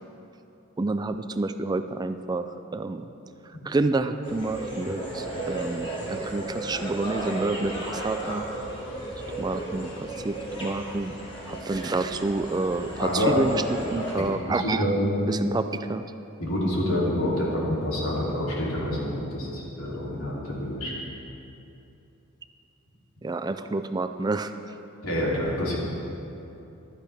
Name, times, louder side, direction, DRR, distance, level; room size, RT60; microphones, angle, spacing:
voice 1, 0.8-3.1 3.6-8.5 9.4-11.2 11.5-13.6 13.9-14.9 15.3-16.1 23.2-24.8, right 3 dB, 20° right, 10 dB, 0.3 m, -29 dB
sound 1, 4.2-14.1, right 1 dB, 25° left, 2.7 m, -35 dB
voice 2, 13.0-13.4 14.5-15.2 16.4-20.9 25.0-25.8, left 1 dB, 85° left, -5 dB, 3.1 m, -27 dB
15.5 x 11.5 x 3.4 m, 2.8 s
head